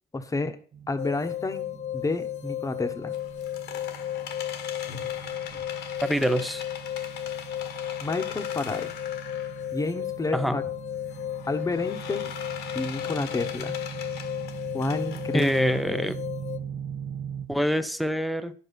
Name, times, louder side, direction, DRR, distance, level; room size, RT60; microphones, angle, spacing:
voice 1, 0.1-0.6 0.9-3.1 8.0-8.9 9.7-10.6 11.5-12.3 12.7-13.8 14.7-15.5, left 3 dB, 20° left, 8 dB, 1.1 m, -30 dB
sound 1, 0.7-17.5, right 7 dB, 55° right, 1.1 m, -41 dB
sound 2, 1.0-16.6, left 13 dB, 40° left, 0.9 m, -34 dB
sound 3, 3.1-9.8 10.2-10.3 11.1-15.8, left 8 dB, 80° left, 1.5 m, -41 dB
voice 2, 6.0-6.6 10.3-10.6 15.3-16.2 17.5-18.5, equal, ahead, 11 dB, 0.7 m, -25 dB
10.5 x 5.5 x 5.8 m, 0.44 s
cardioid pair, 110°, 17 cm